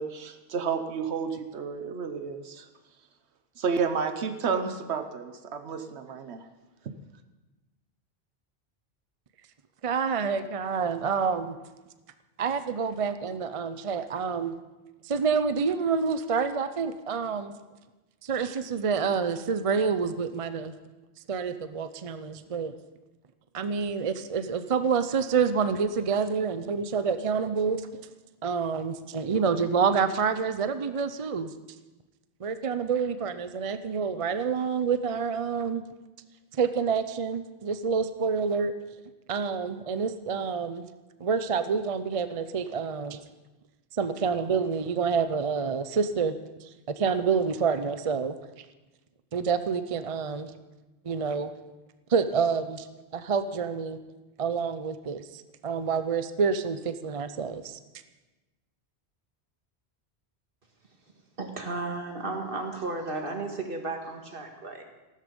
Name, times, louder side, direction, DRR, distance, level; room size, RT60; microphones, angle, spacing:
voice 1, 0.0-2.7 3.6-6.4, right 5 dB, 90° right, 8 dB, 1.2 m, -31 dB
voice 2, 9.8-11.6 12.4-14.5 15.0-17.5 18.2-20.7 21.3-22.7 23.5-27.8 28.4-31.5 32.4-35.8 36.6-38.7 39.3-40.8 41.2-43.2 44.0-46.4 46.9-48.3 49.3-50.5 51.1-51.5 52.1-52.9 53.1-54.0 54.4-57.8, right 5 dB, 40° right, 11 dB, 0.6 m, -28 dB
voice 3, 61.4-64.8, right 3 dB, 55° right, 3 dB, 2.0 m, -34 dB
14.5 x 13.0 x 5.3 m, 1.1 s
omnidirectional pair, 1.1 m